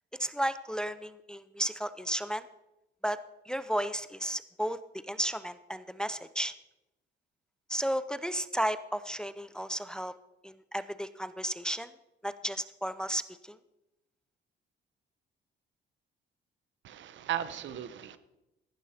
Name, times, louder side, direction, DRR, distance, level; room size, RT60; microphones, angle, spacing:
voice 1, 0.2-2.4 3.0-3.2 3.4-4.8 5.0-6.5 7.7-10.1 10.4-11.9 12.2-13.6, equal, 5° left, 13 dB, 0.6 m, -33 dB
voice 2, 16.8-18.2, right 11 dB, 70° right, 14 dB, 0.9 m, -36 dB
14.5 x 11.5 x 4.3 m, 0.95 s
cardioid pair, 90°, 20 cm